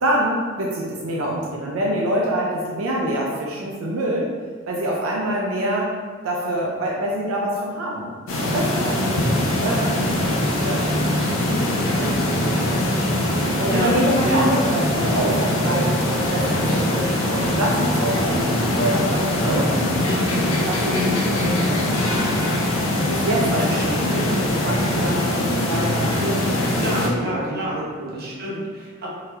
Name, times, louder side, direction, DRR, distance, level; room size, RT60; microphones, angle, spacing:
voice 1, 0.0-4.3 4.7-5.9 6.2-8.1 8.4-10.3 10.6-12.3 12.7-12.9 13.6-15.9 16.2-17.1 17.4-19.9 20.7-21.7 22.0-22.1 22.9-26.6 26.9-28.3, right 1 dB, 80° right, -3 dB, 0.6 m, -26 dB
sound 1, 8.3-27.1, left 1 dB, 70° left, 0.7 m, -22 dB
voice 2, 13.6-14.5 20.9-21.6 23.6-24.1 26.7-27.8 28.1-29.1, equal, 45° right, -5 dB, 0.9 m, -28 dB
3.8 x 3.2 x 2.8 m, 1.5 s
head